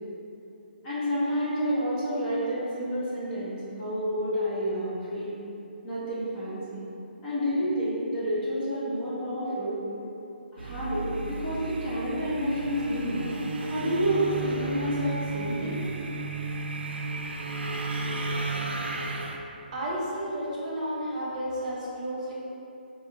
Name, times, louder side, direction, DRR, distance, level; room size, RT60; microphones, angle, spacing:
voice 1, 0.8-5.3 5.8-6.8 7.2-9.8 10.5-13.2 13.7-15.8, equal, 25° left, -11 dB, 1.3 m, -29 dB
sound 1, 10.6-19.4, right 3 dB, 90° right, 0.4 m, -33 dB
voice 2, 19.7-22.3, equal, 45° right, -6 dB, 0.9 m, -32 dB
4.2 x 2.3 x 3.0 m, 2.7 s
hypercardioid pair, 155°, 6 cm